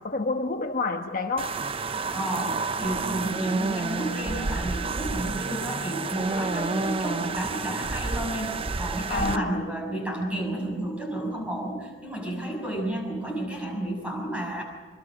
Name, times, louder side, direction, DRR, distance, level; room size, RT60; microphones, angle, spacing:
voice 1, 0.0-1.5 9.1-9.7, left 3 dB, 45° left, 4 dB, 1.2 m, -28 dB
sound 1, 1.4-9.4, right 4 dB, 30° right, 0.6 m, -30 dB
voice 2, 2.1-14.6, right 1 dB, 5° right, 0 dB, 6.3 m, -31 dB
27.0 x 23.5 x 6.4 m, 1.4 s
head